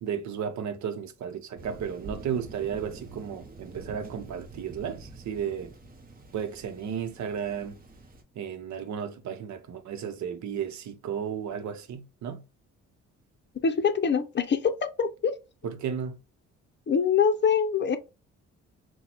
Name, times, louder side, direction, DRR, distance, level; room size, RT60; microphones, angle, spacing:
voice 1, 0.0-5.7 6.3-7.8 8.4-12.4 15.6-16.2, right 8 dB, 70° right, 0.8 m, -34 dB
Thunder, 1.6-8.2, right 2 dB, 30° right, 0.9 m, -46 dB
voice 2, 13.6-15.3 16.9-18.0, left 6 dB, 35° left, 0.7 m, -24 dB
5.8 x 2.3 x 2.9 m
cardioid pair, 90°, 30 cm